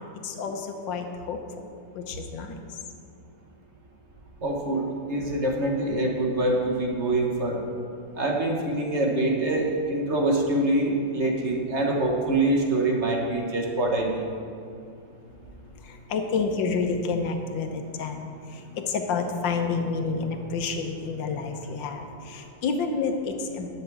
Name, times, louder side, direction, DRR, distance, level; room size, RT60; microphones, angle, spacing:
voice 1, 0.0-1.6 1.9-2.6 15.8-23.7, left 4 dB, 80° left, 5 dB, 1.6 m, -29 dB
voice 2, 4.4-4.8 5.1-7.7 8.1-14.3, right 2 dB, 40° right, 1 dB, 1.4 m, -25 dB
11.5 x 6.0 x 7.5 m, 2.4 s
omnidirectional pair, 2.0 m